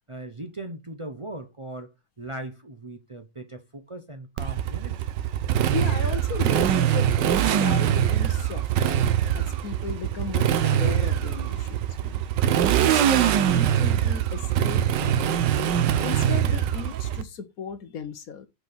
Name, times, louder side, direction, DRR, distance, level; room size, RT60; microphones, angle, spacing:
voice 1, 0.1-1.9 2.2-5.1 11.5-11.7, right 2 dB, 55° right, 0.3 m, -39 dB
Motorcycle, 4.4-17.2, right 10 dB, 75° right, 1.4 m, -23 dB
voice 2, 5.7-12.2 12.7-15.5 16.0-18.5, left 6 dB, 60° left, 1.2 m, -36 dB
5.6 x 4.7 x 5.8 m
omnidirectional pair, 2.0 m